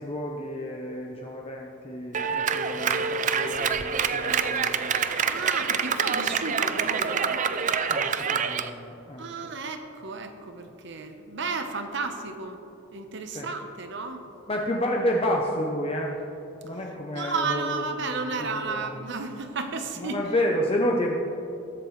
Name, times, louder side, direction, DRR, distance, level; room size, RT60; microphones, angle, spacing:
voice 1, 0.0-4.9 7.9-9.5 13.3-13.5 14.5-16.2 16.6-17.8 18.1-18.9 20.0-21.2, left 1 dB, 30° left, 0 dB, 0.7 m, -30 dB
Clapping, 2.1-8.7, right 6 dB, 40° right, 0.4 m, -26 dB
voice 2, 5.3-7.4 9.2-12.6 12.9-14.2 17.1-20.2, right 4 dB, 60° right, 6 dB, 1.0 m, -33 dB
20.0 x 8.2 x 3.2 m, 2.9 s
head